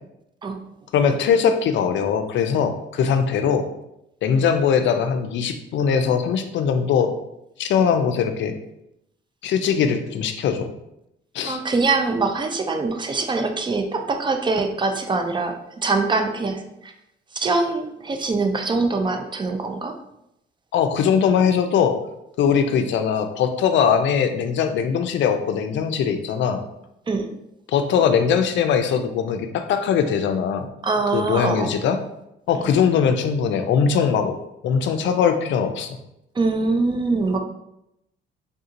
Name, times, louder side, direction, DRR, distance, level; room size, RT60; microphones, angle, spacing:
voice 1, 0.9-3.7 4.2-7.1 7.6-8.5 9.4-10.7 11.3-11.6 20.7-21.9 22.4-26.6 27.7-30.7 31.1-32.0 32.5-34.3 34.6-36.0, left 7 dB, 70° left, 7 dB, 0.4 m, -21 dB
voice 2, 11.4-15.5 15.8-16.9 17.3-19.9 27.1-27.3 30.8-31.7 32.6-32.7 36.4-37.4, right 3 dB, 25° right, 5 dB, 0.4 m, -23 dB
3.6 x 2.8 x 2.5 m, 0.83 s
cardioid pair, 90°, 20 cm